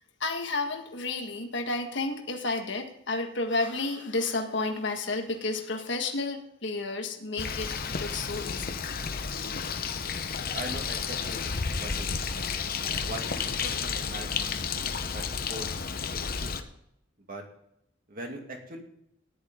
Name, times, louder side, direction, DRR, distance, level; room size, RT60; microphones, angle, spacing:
voice 1, 0.2-8.8, left 3 dB, 65° left, 3 dB, 1.7 m, -31 dB
Bird, 7.4-16.6, left 5 dB, 50° left, 1.0 m, -32 dB
voice 2, 10.5-11.5 11.8-12.3 13.0-14.3 15.1-15.7 16.0-16.5 17.2-17.4 18.1-18.8, right 1 dB, 45° right, 1 dB, 2.7 m, -41 dB
14.5 x 11.0 x 3.7 m, 0.77 s
head